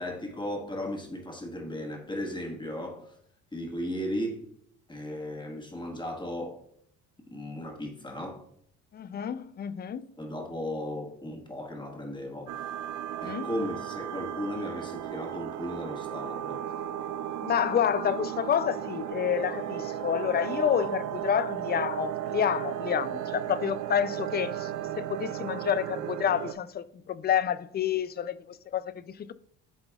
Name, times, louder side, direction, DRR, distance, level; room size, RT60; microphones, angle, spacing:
voice 1, 0.0-3.1 3.5-4.4 4.9-6.6 7.3-8.4 10.2-12.5 13.2-16.7, left 1 dB, 15° left, 1.5 m, -36 dB
voice 2, 8.9-10.1 13.2-13.5 17.4-24.7 25.0-29.3, left 9 dB, 30° left, 0.4 m, -29 dB
sound 1, 12.5-26.5, right 11 dB, 60° right, 0.5 m, -35 dB
10.5 x 3.9 x 2.3 m
supercardioid pair, 80°, 34 cm